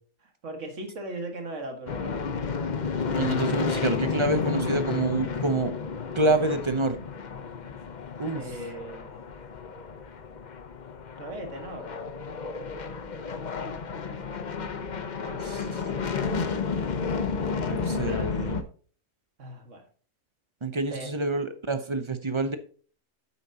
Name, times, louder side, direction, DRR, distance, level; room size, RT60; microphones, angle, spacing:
voice 1, 0.2-2.6 8.3-9.4 11.2-12.0 13.9-14.3 15.2-16.2 17.7-18.3 19.4-19.8 20.9-21.1, right 2 dB, 60° right, 4 dB, 2.1 m, -40 dB
sound 1, 1.9-18.6, left 5 dB, 40° left, 0.7 m, -31 dB
voice 2, 3.2-5.7 6.1-7.0 8.2-8.4 15.4-15.8 17.6-18.6 20.6-22.6, right 2 dB, 30° right, 10 dB, 0.5 m, -27 dB
9.1 x 8.1 x 2.8 m, 0.43 s
omnidirectional pair, 1.4 m